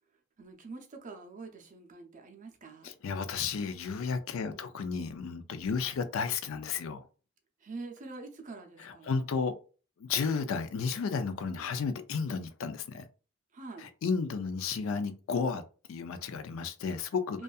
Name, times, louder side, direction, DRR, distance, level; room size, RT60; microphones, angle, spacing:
voice 1, 0.4-2.9 4.4-4.8 7.6-9.2 13.5-13.9 17.3-17.4, right 3 dB, 40° right, 0.5 m, -45 dB
voice 2, 2.8-7.0 8.8-9.5 10.0-13.1 13.8-15.6 15.9-17.4, left 5 dB, 70° left, 0.4 m, -33 dB
2.6 x 2.3 x 2.3 m
head